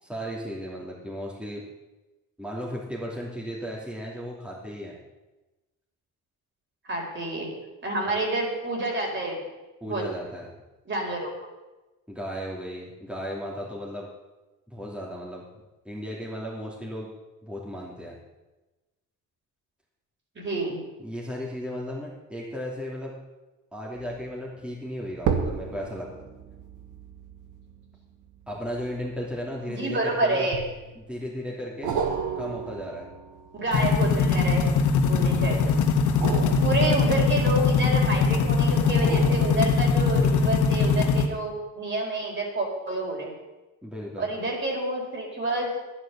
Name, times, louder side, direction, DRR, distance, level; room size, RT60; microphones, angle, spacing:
voice 1, 0.0-1.6 2.4-5.0 9.8-10.5 12.1-14.1 14.7-15.4 15.8-17.1 17.4-18.2 21.0-23.1 23.7-26.1 28.5-30.5 30.9-32.0 32.4-33.1 36.2-36.6 43.8-44.3, equal, 5° right, -4 dB, 2.8 m, -35 dB
voice 2, 6.8-7.5 7.8-9.4 9.8-10.0 10.9-11.3 20.3-20.8 29.7-30.6 33.6-34.8 35.0-35.8 36.6-43.3 44.2-45.7, right 2 dB, 40° right, -1 dB, 4.5 m, -28 dB
sound 1, 24.0-24.3 25.2-29.8 30.5-31.1 31.8-34.8 36.0-38.1 38.8-40.3 40.7-40.8, right 6 dB, 85° right, 1.5 m, -34 dB
sound 2, 33.7-41.3, left 5 dB, 80° left, 1.5 m, -22 dB
11.0 x 10.0 x 6.9 m, 1.1 s
cardioid pair, 90°, 30 cm